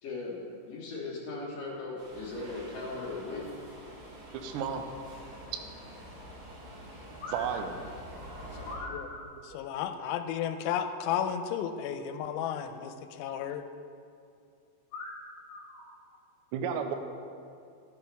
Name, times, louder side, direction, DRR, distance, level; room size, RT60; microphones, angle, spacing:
voice 1, 0.0-3.5 7.2-7.7 8.6-9.4 14.9-15.2 15.4-15.9, left 3 dB, 60° left, -4 dB, 2.4 m, -39 dB
Subway metro underground, 2.0-8.7, equal, 60° right, 4.0 m, -46 dB
voice 2, 4.4-4.9 7.3-7.7 9.5-9.6 16.5-17.0, right 7 dB, 80° right, 5 dB, 2.8 m, -32 dB
voice 3, 9.5-13.6, left 9 dB, 90° left, 9 dB, 3.1 m, -33 dB
13.5 x 12.0 x 3.4 m, 2.4 s
omnidirectional pair, 5.4 m